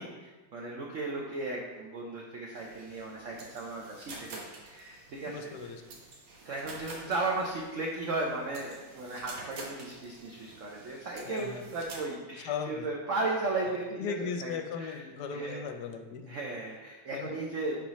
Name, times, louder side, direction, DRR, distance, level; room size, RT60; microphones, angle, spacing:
voice 1, 0.0-5.4 6.4-14.2 14.4-15.0 15.3-15.6 16.3-17.8, right 2 dB, 55° right, -2 dB, 0.9 m, -35 dB
sound 1, 2.5-12.0, right 2 dB, 80° right, 1.9 m, -49 dB
voice 2, 5.3-5.8 11.3-11.7 12.4-12.9 14.0-16.3 17.1-17.3, left 6 dB, 70° left, 6 dB, 1.1 m, -37 dB
10.5 x 4.5 x 3.1 m, 1.2 s
omnidirectional pair, 2.2 m